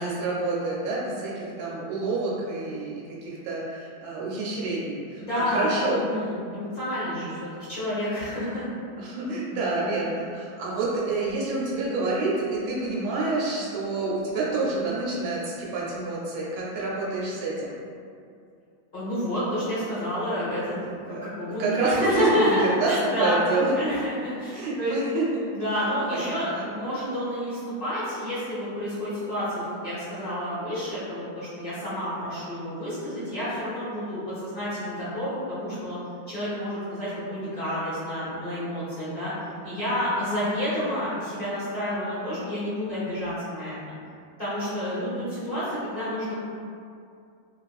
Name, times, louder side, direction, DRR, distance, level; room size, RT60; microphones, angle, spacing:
voice 1, 0.0-6.1 9.0-17.7 21.1-21.3 21.6-22.9 23.2-23.9 24.5-25.5 25.8-26.7, right 3 dB, 80° right, -5 dB, 1.3 m, -28 dB
voice 2, 5.2-8.6 18.9-25.0 25.5-36.0 36.3-39.3 39.6-43.9 44.4-46.4, equal, 35° left, -12 dB, 0.9 m, -29 dB
2.9 x 2.8 x 2.3 m, 2.4 s
omnidirectional pair, 2.2 m